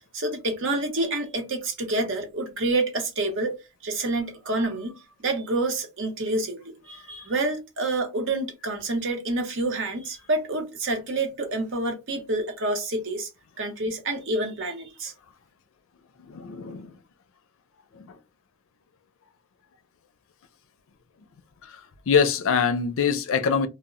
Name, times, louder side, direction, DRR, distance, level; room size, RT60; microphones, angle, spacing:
voice 1, 0.1-3.5 3.8-13.3 13.6-15.1, right 2 dB, 65° right, 0.8 m, -28 dB
voice 2, 16.2-17.0 17.9-18.2 21.6-23.7, left 6 dB, 65° left, 0.4 m, -24 dB
2.1 x 2.0 x 3.6 m
head